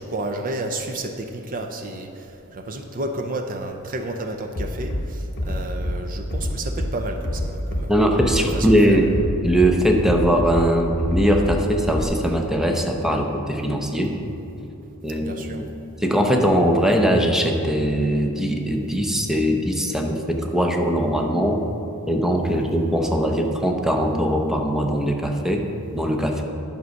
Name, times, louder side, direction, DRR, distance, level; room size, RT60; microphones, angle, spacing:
voice 1, 0.0-7.9 8.3-9.0 15.2-15.7 22.6-22.7, right 2 dB, 40° right, 5 dB, 0.5 m, -31 dB
Bass drum, 4.5-5.0 5.4-6.0 6.3-6.9 7.2-7.9 8.2-8.8 9.1-9.7 10.1-10.7 11.0-11.6 11.9-12.0, left 1 dB, 50° left, 1.2 m, -26 dB
voice 2, 7.9-9.1 9.4-14.2 15.0-15.7 16.0-21.6 22.1-25.7 25.9-26.4, equal, ahead, 2 dB, 0.7 m, -21 dB
11.0 x 5.3 x 6.4 m, 2.9 s
head